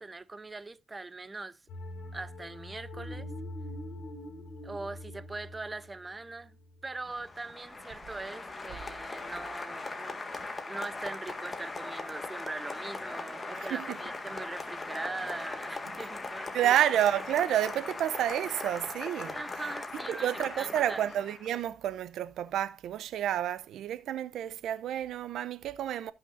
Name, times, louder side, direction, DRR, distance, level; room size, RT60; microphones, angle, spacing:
voice 1, 0.0-1.6 2.1-3.3 4.6-6.6 6.8-10.2 10.7-16.8 19.3-20.3 20.5-21.0, right 3 dB, 20° right, 0.6 m, -41 dB
sound 1, 1.7-7.0, left 1 dB, 70° left, 3.1 m, -43 dB
Applause, 7.1-21.5, left 3 dB, 25° left, 1.7 m, -39 dB
voice 2, 13.5-14.0 16.5-19.4 20.1-26.1, right 11 dB, 75° right, 0.6 m, -30 dB
16.0 x 6.0 x 2.6 m
cardioid pair, 90°, 0 cm